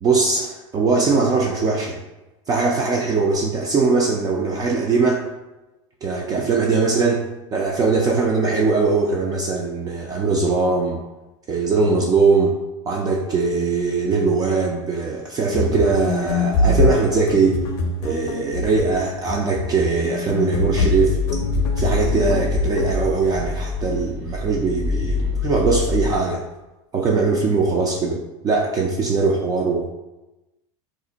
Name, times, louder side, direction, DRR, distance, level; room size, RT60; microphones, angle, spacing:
voice 1, 0.0-2.0 2.5-5.3 6.0-11.0 11.5-12.6 12.9-17.6 18.0-21.2 21.8-26.4 26.9-29.9, right 4 dB, 25° right, 0 dB, 0.3 m, -21 dB
sound 1, 15.5-23.1, left 2 dB, 70° left, 0.5 m, -24 dB
sound 2, 20.8-26.1, left 4 dB, 55° right, 0.7 m, -25 dB
2.5 x 2.0 x 3.8 m, 1.0 s
supercardioid pair, 120°, 16 cm